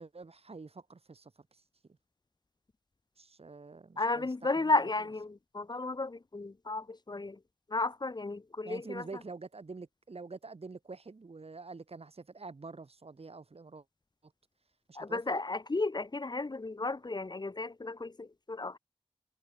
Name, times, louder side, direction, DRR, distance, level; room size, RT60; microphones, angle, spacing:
voice 1, 0.0-1.6 3.2-5.1 8.6-13.8 14.9-15.4, right 4 dB, 65° right, 7.4 m, -47 dB
voice 2, 4.0-7.4 7.7-9.0 15.0-18.8, left 3 dB, 40° left, 0.9 m, -33 dB
cardioid pair, 45°, 11 cm